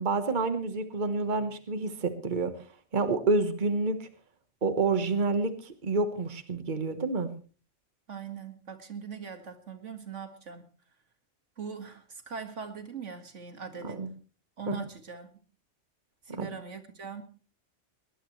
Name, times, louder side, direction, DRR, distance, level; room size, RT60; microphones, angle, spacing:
voice 1, 0.0-2.5 2.9-4.1 4.6-7.3 13.8-14.1 14.7-14.8 16.4-16.5, right 3 dB, 40° right, 9 dB, 1.5 m, -28 dB
voice 2, 8.1-10.7 11.6-14.0 14.6-15.3 16.3-17.2, right 6 dB, 85° right, 7 dB, 2.3 m, -41 dB
21.0 x 19.5 x 3.2 m, 0.37 s
omnidirectional pair, 1.2 m